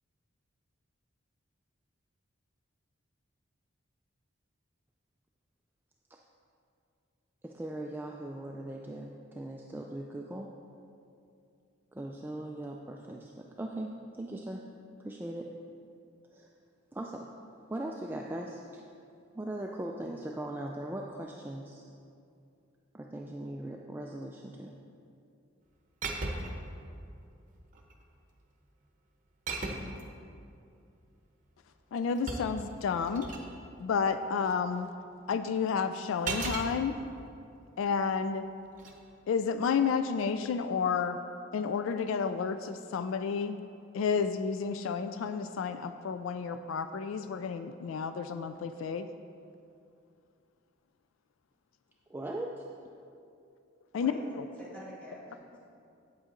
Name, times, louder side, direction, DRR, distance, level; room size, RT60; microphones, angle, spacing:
voice 1, 7.4-10.5 11.9-14.6 15.0-15.5 16.3-16.5 16.9-17.3 17.7-18.8 19.3-21.8 22.9-24.8 52.1-52.7, right 1 dB, 10° right, 0 dB, 0.3 m, -39 dB
sound 1, 26.0-26.7 27.6-28.0 29.5-30.0 31.7-33.5 36.2-36.7 38.7-38.9, right 3 dB, 40° right, 0.8 m, -36 dB
voice 2, 31.9-33.3 33.8-34.9 35.3-37.0 37.8-38.4 39.3-41.2 41.5-43.6 43.9-49.1 53.9-54.1, left 6 dB, 75° left, 10 dB, 0.3 m, -31 dB
voice 3, 53.9-55.6, equal, 5° left, -7 dB, 2.0 m, -47 dB
8.1 x 8.1 x 3.8 m, 2.5 s
head